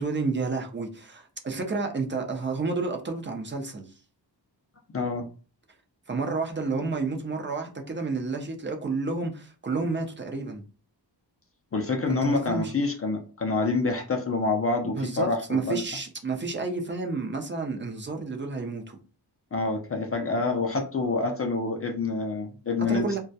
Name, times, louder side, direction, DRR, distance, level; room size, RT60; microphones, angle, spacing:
voice 1, 0.0-3.9 6.1-10.6 12.1-12.7 14.8-19.0 22.9-23.2, right 3 dB, 25° right, 0.4 m, -30 dB
voice 2, 4.9-5.3 11.7-15.8 19.5-23.2, left 3 dB, 35° left, 0.4 m, -27 dB
2.2 x 2.1 x 2.6 m
wide cardioid pair, 90°, 43 cm